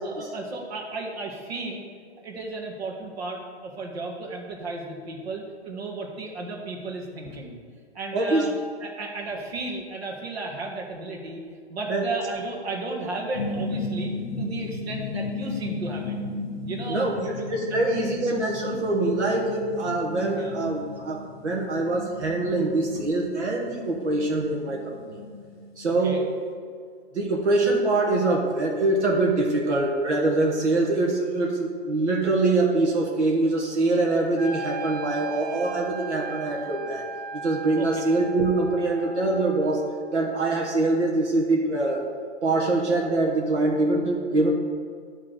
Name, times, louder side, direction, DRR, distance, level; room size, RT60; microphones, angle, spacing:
voice 1, 0.0-1.8 2.2-7.6 7.9-8.5 8.8-11.4 11.7-14.1 14.4-16.2 16.6-17.5 18.0-18.1 20.3-20.6 25.9-26.2 37.8-37.9, right 3 dB, 65° right, -2 dB, 1.8 m, -34 dB
voice 2, 8.1-8.4 11.9-12.0 16.9-17.1 17.5-25.2 25.8-26.2 27.1-37.0 37.3-39.8 40.1-42.0 42.4-44.5, right 2 dB, 90° right, -2 dB, 1.6 m, -24 dB
sound 1, 13.3-26.2, left 3 dB, 45° left, 1.0 m, -35 dB
Wind instrument woodwind instrument, 34.4-40.4, right 4 dB, 45° right, 2.4 m, -37 dB
11.0 x 3.7 x 6.6 m, 2.1 s
hypercardioid pair, 175°, 34 cm